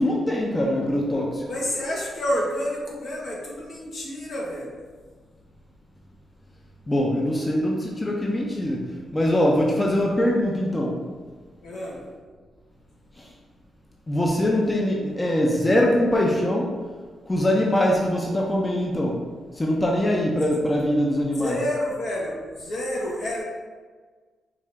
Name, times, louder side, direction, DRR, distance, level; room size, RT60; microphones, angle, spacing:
voice 1, 0.0-1.4 6.9-8.8 9.1-11.0 13.2-13.3 14.1-16.8 17.3-19.2 19.6-21.6, left 1 dB, 25° left, -2 dB, 0.7 m, -22 dB
voice 2, 1.5-4.7 11.6-12.0 21.4-23.4, equal, 70° left, -4 dB, 1.2 m, -29 dB
4.9 x 2.7 x 3.4 m, 1.5 s
cardioid pair, 70°, 0 cm